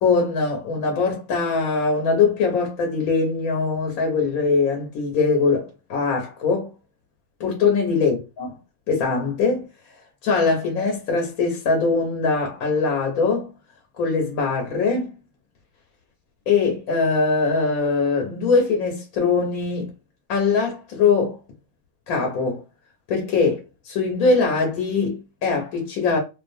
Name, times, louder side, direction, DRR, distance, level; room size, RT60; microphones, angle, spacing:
voice 1, 0.0-6.7 7.4-8.5 8.9-9.7 10.2-13.5 14.0-15.1 16.5-19.9 20.3-21.4 22.1-22.6 23.1-26.2, left 4 dB, 80° left, 1.1 m, -22 dB
2.4 x 2.4 x 2.5 m
omnidirectional pair, 1.5 m